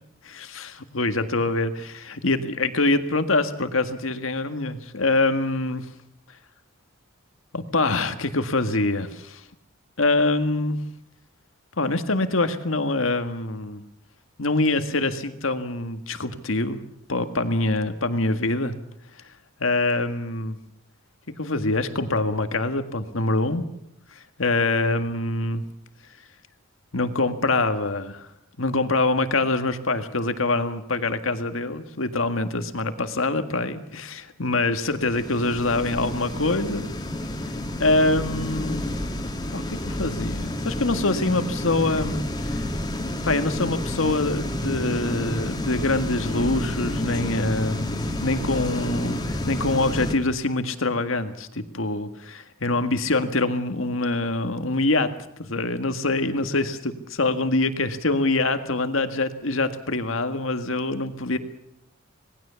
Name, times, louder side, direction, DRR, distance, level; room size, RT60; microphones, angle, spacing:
voice 1, 0.2-5.9 7.5-9.4 10.0-10.8 11.8-13.8 14.4-16.8 17.1-18.8 19.6-20.6 21.4-23.6 24.2-25.6 26.9-28.3 28.6-36.8 37.8-38.9 39.5-42.7 43.2-55.1 55.4-61.4, left 2 dB, 70° left, 9 dB, 1.8 m, -25 dB
sound 1, 34.8-50.1, left 1 dB, 20° left, 2.3 m, -30 dB
26.5 x 19.0 x 7.0 m, 0.76 s
head